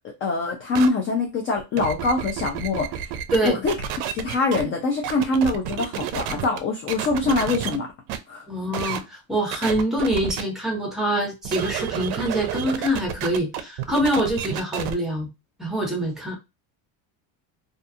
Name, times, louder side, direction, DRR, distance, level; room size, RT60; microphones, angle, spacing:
voice 1, 0.2-3.1 3.4-3.7 4.1-7.9 8.3-8.5, left 3 dB, 30° left, 2 dB, 0.4 m, -24 dB
sound 1, 0.7-0.9 1.6-4.6 5.0-6.6 6.9-7.8 8.1-8.2 8.7-9.0 9.5-10.4 11.4-14.9, right 9 dB, 60° right, 0.5 m, -30 dB
voice 2, 3.3-3.6 8.5-15.3 15.6-16.3, right 1 dB, ahead, 0 dB, 0.9 m, -25 dB
2.4 x 2.3 x 2.6 m, 0.24 s
cardioid pair, 140°, 44 cm